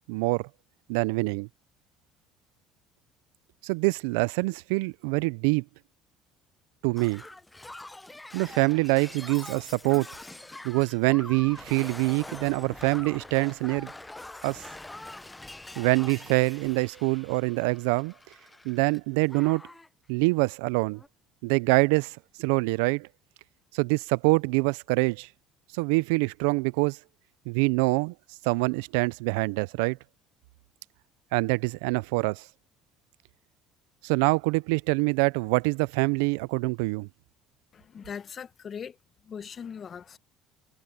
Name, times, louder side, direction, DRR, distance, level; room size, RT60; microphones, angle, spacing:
voice 1, 0.1-0.5 0.9-1.5 3.6-5.6 6.8-7.2 8.3-10.1 10.6-13.9 14.4-14.7 15.8-18.1 18.6-19.6 20.1-21.0 21.4-23.1 23.7-25.3 25.7-27.0 27.5-28.1 28.4-30.0 31.3-32.5 34.0-37.1, right 27 dB, 85° right, 0.4 m, -25 dB
Shatter, 7.0-19.0 19.3-19.9 20.9-21.1, left 2 dB, 10° left, 0.8 m, -44 dB
voice 2, 37.7-39.0 39.2-40.2, left 7 dB, 40° left, 1.3 m, -40 dB
supercardioid pair, 85°, 0 cm